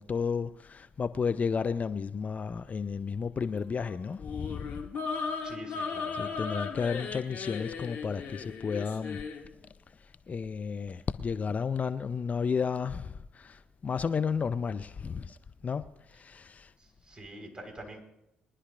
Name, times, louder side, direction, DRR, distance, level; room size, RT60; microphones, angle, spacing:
voice 1, 0.0-4.8 6.2-9.3 10.0-15.4 15.6-16.7, left 6 dB, 35° left, 0.5 m, -32 dB
sound 1, 4.2-9.4, left 5 dB, 55° left, 2.1 m, -36 dB
voice 2, 5.4-6.4 16.8-18.0, right 1 dB, 25° right, 4.1 m, -46 dB
22.5 x 11.0 x 2.5 m
hypercardioid pair, 45°, 4 cm